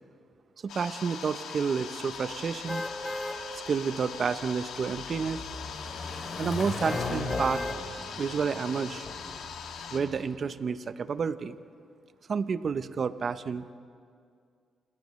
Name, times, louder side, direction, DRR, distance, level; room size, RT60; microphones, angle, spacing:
voice 1, 0.6-2.8 3.5-5.4 6.4-7.6 8.2-9.1 9.9-11.5 12.3-13.7, right 5 dB, 50° right, 12 dB, 0.7 m, -30 dB
sound 1, 0.7-10.0, left 6 dB, 90° left, 2.2 m, -41 dB
sound 2, 1.8-10.2, left 3 dB, 50° left, 3.0 m, -39 dB
sound 3, 2.7-3.4 3.9-4.1 6.9-7.8 8.4-8.5, left 1 dB, 15° left, 2.1 m, -35 dB
29.0 x 28.0 x 3.2 m, 2.2 s
cardioid pair, 90°, 0 cm